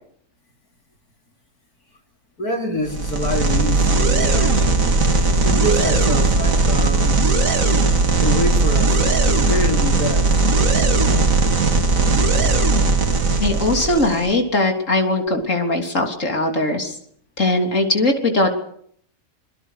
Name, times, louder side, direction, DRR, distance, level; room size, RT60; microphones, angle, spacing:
voice 1, 2.4-7.3 8.2-9.0 9.3-10.5 11.0-11.6, left 1 dB, 90° left, 3.7 m, -26 dB
sound 1, 2.9-14.3, right 3 dB, 65° right, 2.5 m, -18 dB
voice 2, 13.4-17.0 17.4-18.5, left 2 dB, 55° left, 3.8 m, -20 dB
26.0 x 22.0 x 6.5 m
omnidirectional pair, 1.6 m